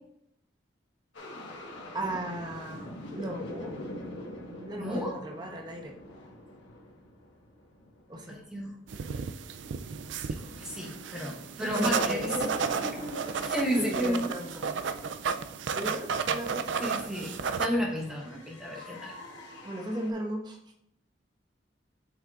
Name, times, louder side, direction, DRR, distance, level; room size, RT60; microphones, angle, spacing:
sound 1, 1.1-9.0 9.3-20.1, left 1 dB, 90° left, 1.5 m, -45 dB
voice 1, 1.9-3.8 4.5-6.0 8.1-8.4 11.6-12.6 13.6-14.6 15.7-16.9 18.7-18.9 19.6-20.6, right 1 dB, 25° right, 1 dB, 1.0 m, -36 dB
voice 2, 4.8-5.2 8.3-8.7 10.3-12.3 13.4-14.3 16.8-19.2, equal, 5° right, -3 dB, 1.1 m, -33 dB
sound 2, 8.9-17.7, right 6 dB, 85° right, 0.4 m, -33 dB
8.0 x 6.6 x 2.5 m, 0.76 s
head